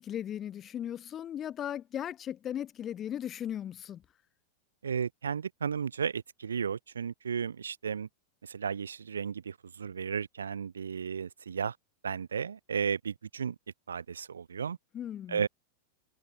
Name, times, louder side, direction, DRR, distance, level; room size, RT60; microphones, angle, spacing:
voice 1, 0.0-4.0 14.9-15.4, left 10 dB, 25° left, 1.0 m, -37 dB
voice 2, 4.8-8.1 8.5-11.7 12.0-13.5 13.9-14.8 15.3-15.5, right 7 dB, 70° right, 1.5 m, -34 dB
figure-of-eight pair, 90°, 0 cm